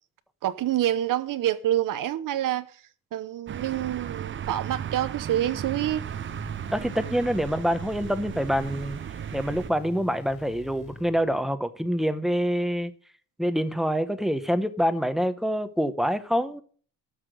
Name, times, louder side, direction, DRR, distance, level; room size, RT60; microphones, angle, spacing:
voice 1, 0.4-2.7 3.1-6.0, right 12 dB, 75° right, 0.8 m, -27 dB
sound 1, 3.5-9.7, right 9 dB, 35° right, 0.5 m, -36 dB
sound 2, 6.0-11.5, left 4 dB, 35° left, 4.2 m, -47 dB
voice 2, 6.7-9.0 9.3-12.9 13.4-16.6, equal, ahead, 0.9 m, -26 dB
13.0 x 5.9 x 7.8 m
wide cardioid pair, 155°, 33 cm